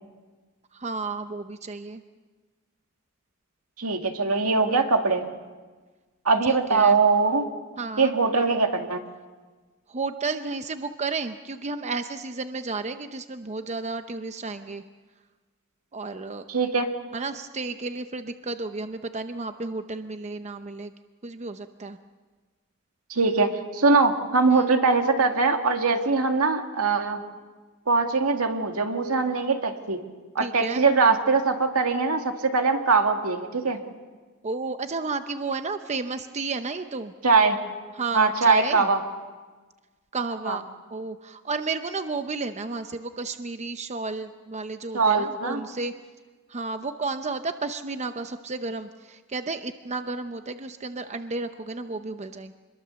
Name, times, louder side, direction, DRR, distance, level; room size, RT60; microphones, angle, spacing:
voice 1, 0.7-2.0 6.4-7.0 7.8-8.1 9.9-14.8 15.9-16.5 17.1-20.9 21.2-22.0 24.5-24.7 30.4-30.8 34.4-37.1 37.9-38.9 40.1-40.6 40.9-45.9 46.5-52.5, right 3 dB, 30° right, 8 dB, 0.7 m, -32 dB
voice 2, 3.8-5.3 6.3-7.5 8.0-9.0 16.5-16.9 23.1-27.2 27.9-30.0 30.4-33.8 37.2-37.6 38.1-39.0 40.5-40.6 44.9-45.6, right 4 dB, 80° right, 5 dB, 2.1 m, -22 dB
26.5 x 21.5 x 7.0 m, 1.4 s
head